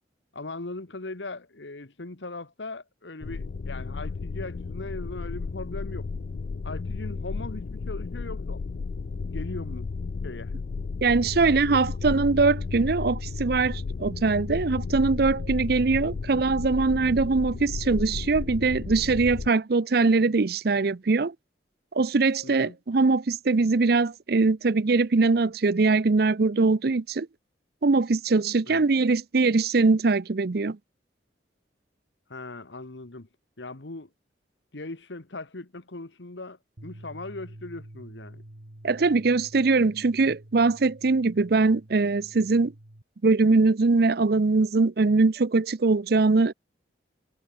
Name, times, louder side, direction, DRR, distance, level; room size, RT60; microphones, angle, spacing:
voice 1, 0.3-6.1 6.6-8.6 9.3-9.9 10.2-10.5 11.4-11.8 22.4-22.8 28.7-28.8 32.3-33.3 33.6-34.1 34.7-38.4, left 2 dB, 75° left, 1.5 m, -39 dB
sound 1, 3.2-19.5, left 4 dB, 55° left, 0.4 m, -33 dB
voice 2, 11.0-21.3 22.0-27.3 27.8-30.8 38.8-42.7 43.2-46.5, right 3 dB, 55° right, 0.6 m, -22 dB
sound 2, 36.8-43.0, right 1 dB, 90° right, 2.4 m, -48 dB
head